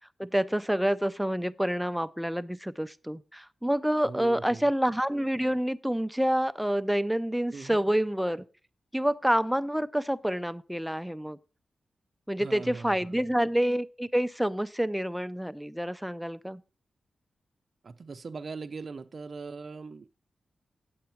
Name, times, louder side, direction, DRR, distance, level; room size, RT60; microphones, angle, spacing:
voice 1, 0.2-8.5 8.9-11.4 12.3-16.6, equal, 5° right, 0.4 m, -28 dB
voice 2, 4.0-4.7 7.5-7.8 12.4-13.1 17.8-20.1, right 4 dB, 50° right, 0.5 m, -40 dB
8.6 x 8.0 x 4.4 m
wide cardioid pair, 100°, 0 cm